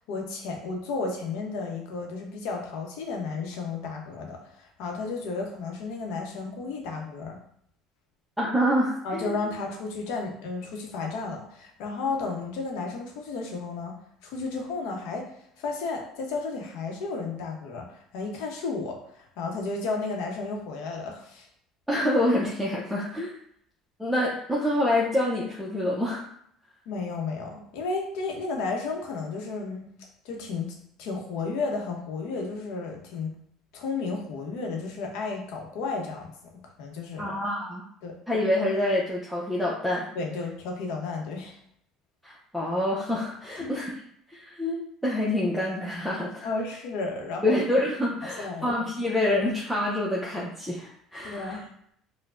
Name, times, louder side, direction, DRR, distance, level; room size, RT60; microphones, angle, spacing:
voice 1, 0.1-7.4 9.0-21.5 26.9-29.9 30.2-33.3 33.7-37.3 38.0-38.1 40.1-41.6 43.6-43.8 46.4-47.6 48.4-48.7 51.2-51.7, left 4 dB, 75° left, 1 dB, 0.8 m, -33 dB
voice 2, 8.4-9.0 9.2-9.4 21.9-23.3 24.0-26.3 37.2-37.8 38.3-40.1 42.2-43.9 44.3-46.5 47.4-51.6, left 1 dB, ahead, -5 dB, 0.6 m, -26 dB
4.6 x 2.1 x 2.5 m, 0.69 s
supercardioid pair, 95°, 0 cm